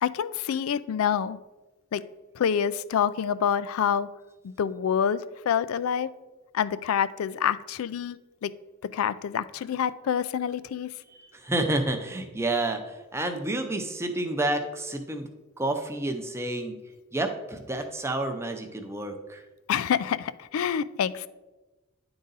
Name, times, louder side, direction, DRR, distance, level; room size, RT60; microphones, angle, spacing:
voice 1, 0.0-1.4 1.9-2.1 2.4-4.1 4.4-6.1 6.5-8.5 8.8-10.9 19.7-21.3, left 8 dB, 80° left, 16 dB, 0.3 m, -27 dB
voice 2, 11.3-15.3 15.6-16.8 17.1-19.4, right 2 dB, 10° right, 6 dB, 0.6 m, -29 dB
10.0 x 3.9 x 3.9 m, 1.1 s
head